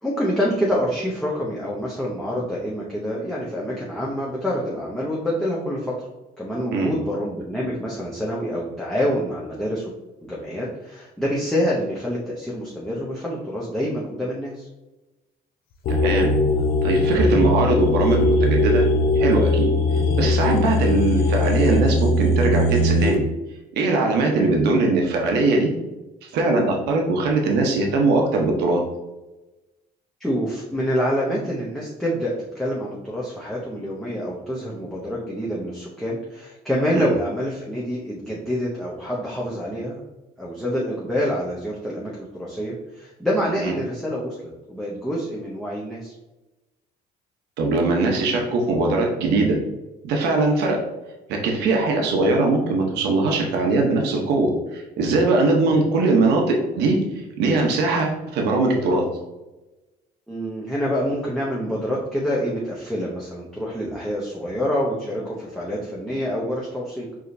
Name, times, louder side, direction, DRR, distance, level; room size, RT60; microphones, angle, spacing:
voice 1, 0.0-5.9 6.4-9.9 10.2-14.7 24.3-24.5 30.2-40.0 40.4-44.3 44.7-46.1 55.6-55.8 60.3-67.1, equal, 5° left, -6 dB, 0.7 m, -26 dB
sound 1, 15.8-23.1, left 2 dB, 60° left, 0.6 m, -20 dB
voice 2, 16.0-16.3 16.8-18.8 19.2-19.7 20.2-23.2 23.7-25.7 26.3-28.8 36.9-37.1 43.6-43.7 47.6-49.6 50.0-50.8 51.3-57.0 57.4-59.0, right 3 dB, 80° right, 1 dB, 0.8 m, -21 dB
4.8 x 2.8 x 2.6 m, 1.0 s
cardioid pair, 110°, 17 cm